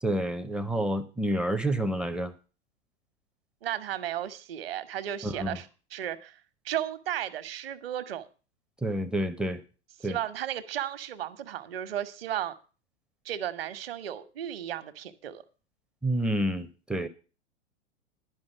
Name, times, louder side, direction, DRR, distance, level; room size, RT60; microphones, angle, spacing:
voice 1, 0.0-2.3 5.2-5.6 8.8-9.6 10.0-10.2 16.0-17.1, right 1 dB, 5° right, 0.4 m, -29 dB
voice 2, 3.6-6.4 6.6-8.3 10.0-12.6 13.2-15.4, right 11 dB, 55° right, 1.1 m, -34 dB
11.5 x 5.3 x 8.0 m
figure-of-eight pair, 95°, 35 cm